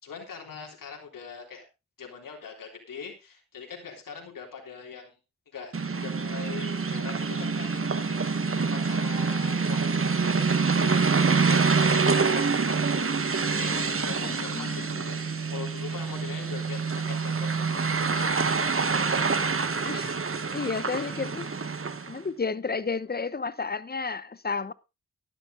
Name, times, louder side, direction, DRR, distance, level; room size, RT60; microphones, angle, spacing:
voice 1, 0.0-1.7 2.0-5.2 5.5-8.4 8.7-19.0 20.7-20.8, left 6 dB, 80° left, 3.6 m, -42 dB
sound 1, 5.7-22.2, right 4 dB, 40° right, 1.5 m, -26 dB
voice 2, 14.2-15.0 19.8-20.2 20.5-21.5 22.1-24.7, left 4 dB, 30° left, 1.0 m, -32 dB
11.5 x 11.0 x 3.8 m
cardioid pair, 55°, 32 cm